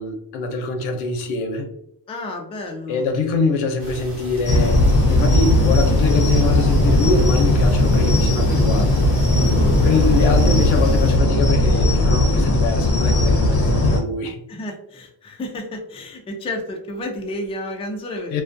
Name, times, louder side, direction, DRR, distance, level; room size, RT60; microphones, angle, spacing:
voice 1, 0.0-1.7 2.9-9.0 9.8-14.4 18.3-18.4, left 4 dB, 90° left, 5 dB, 0.7 m, -24 dB
voice 2, 2.1-3.1 9.4-9.8 14.5-18.3, left 1 dB, 15° left, 2 dB, 0.3 m, -31 dB
sound 1, 3.8-11.2, right 1 dB, 60° right, 1.2 m, -26 dB
sound 2, 4.5-14.0, left 2 dB, 30° left, 0.7 m, -17 dB
2.3 x 2.2 x 2.5 m, 0.77 s
cardioid pair, 95°, 47 cm